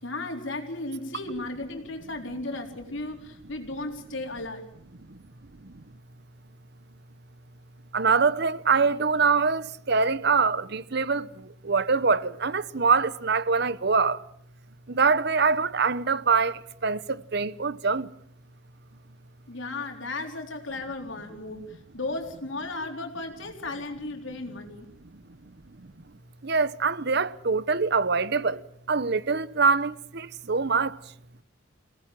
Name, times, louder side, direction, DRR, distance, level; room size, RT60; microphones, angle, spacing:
voice 1, 0.0-4.7 19.5-24.9, left 2 dB, 70° left, 3.9 m, -35 dB
voice 2, 7.9-14.2 14.9-18.1 26.4-31.0, right 4 dB, 55° right, 0.9 m, -24 dB
28.0 x 18.5 x 7.5 m
head